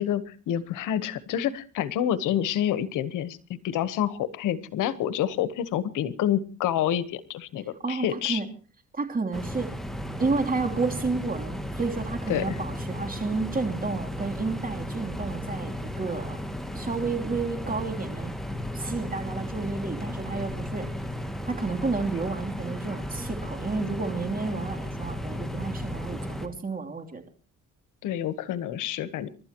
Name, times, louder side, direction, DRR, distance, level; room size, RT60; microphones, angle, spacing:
voice 1, 0.0-3.4 3.6-8.4 12.3-12.6 28.0-29.3, left 10 dB, 90° left, 15 dB, 1.2 m, -28 dB
voice 2, 7.8-8.5 8.9-9.7 10.2-16.4 16.7-18.3 18.7-20.9 21.4-27.2, right 4 dB, 30° right, 4 dB, 3.1 m, -31 dB
sound 1, 9.3-26.5, equal, ahead, 2.1 m, -34 dB
29.5 x 12.5 x 3.0 m, 0.37 s
cardioid pair, 90°, 30 cm